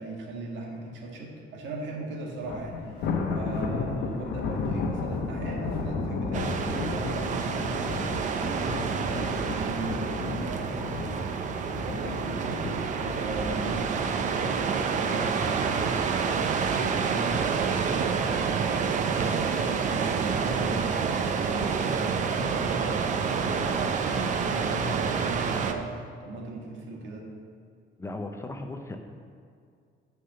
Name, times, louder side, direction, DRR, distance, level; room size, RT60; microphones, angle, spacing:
voice 1, 0.0-11.0 11.7-12.7 13.1-27.3, right 2 dB, 80° right, 0 dB, 1.6 m, -38 dB
Thunder, 2.4-15.7 16.1-16.4 16.8-16.9 17.8-18.3, left 4 dB, 65° left, 0.9 m, -34 dB
sound 1, 6.3-25.7, right 6 dB, 40° right, 0.5 m, -28 dB
voice 2, 28.0-29.0, left 2 dB, 15° left, 4 dB, 0.5 m, -36 dB
6.6 x 5.6 x 6.8 m, 2.3 s
cardioid pair, 170°, 19 cm